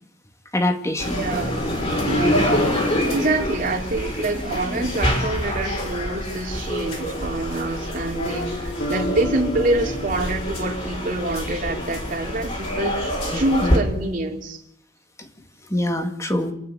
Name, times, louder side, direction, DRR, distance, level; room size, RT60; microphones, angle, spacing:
voice 1, 0.5-1.2 13.3-13.8 15.2-15.3 15.7-16.5, left 1 dB, 15° left, 6 dB, 2.1 m, -24 dB
sound 1, 1.0-13.8, equal, 35° left, 5.8 m, -26 dB
voice 2, 1.2-1.6 2.0-2.6 3.1-14.6, right 2 dB, 50° right, 2 dB, 3.1 m, -26 dB
sound 2, 8.8-12.7, left 1 dB, 70° left, 3.9 m, -35 dB
28.0 x 9.4 x 9.9 m, 0.75 s
head